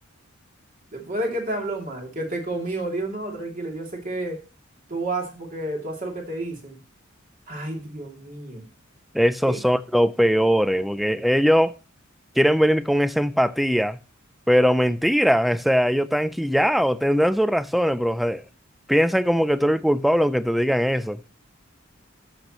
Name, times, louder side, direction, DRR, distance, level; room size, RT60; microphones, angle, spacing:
voice 1, 0.9-4.4 4.9-6.8 7.5-8.6 9.5-9.6, right 2 dB, 40° right, 2.7 m, -30 dB
voice 2, 9.1-11.7 12.4-14.0 14.5-18.4 18.9-21.2, equal, ahead, 0.3 m, -20 dB
13.0 x 6.0 x 3.0 m
head